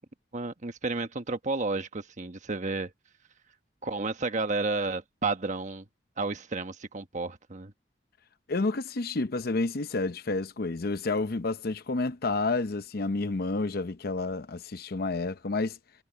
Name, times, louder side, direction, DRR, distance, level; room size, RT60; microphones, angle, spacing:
voice 1, 0.3-2.9 3.8-5.8 6.2-7.7, right 3 dB, 45° right, 1.3 m, -31 dB
voice 2, 8.5-15.8, left 3 dB, 55° left, 0.7 m, -30 dB
head